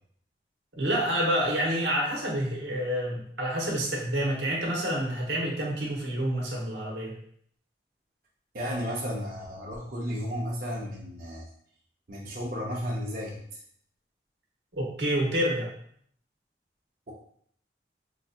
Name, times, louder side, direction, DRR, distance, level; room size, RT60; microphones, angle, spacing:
voice 1, 0.7-7.1 14.7-15.7, equal, 85° right, -2 dB, 1.1 m, -28 dB
voice 2, 8.5-11.4 12.1-13.4, equal, 50° right, -5 dB, 0.7 m, -33 dB
4.7 x 2.7 x 2.4 m, 0.64 s
head